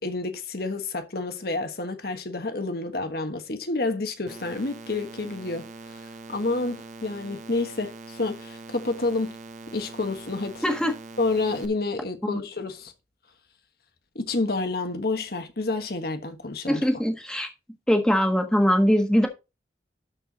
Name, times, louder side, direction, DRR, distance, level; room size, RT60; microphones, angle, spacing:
voice 1, 0.0-9.4 9.7-10.6 11.2-12.9 14.1-16.8, left 3 dB, 60° left, 1.4 m, -29 dB
sound 1, 4.3-11.7, right 3 dB, 45° right, 1.0 m, -43 dB
voice 2, 10.6-10.9 12.2-12.4 16.7-17.5 17.9-19.3, equal, 5° left, 1.4 m, -22 dB
12.5 x 4.5 x 4.1 m
head